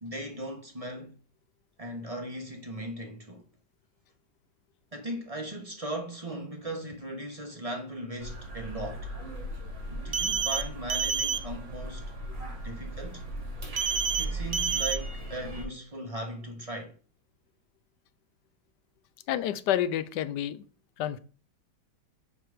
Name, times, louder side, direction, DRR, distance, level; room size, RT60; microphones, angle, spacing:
voice 1, 0.0-1.1 1.8-3.5 4.9-9.1 9.9-12.0 12.6-13.2 14.2-16.9, right 1 dB, 25° right, 0.8 m, -38 dB
sound 1, 8.2-15.7, right 1 dB, 90° right, 3.3 m, -38 dB
sound 2, 10.1-10.6 10.9-11.4 13.8-14.3 14.5-15.0, right 6 dB, 65° right, 0.5 m, -28 dB
voice 2, 19.3-20.6 21.0-21.2, left 11 dB, 75° left, 1.2 m, -29 dB
6.0 x 4.6 x 5.0 m
omnidirectional pair, 1.9 m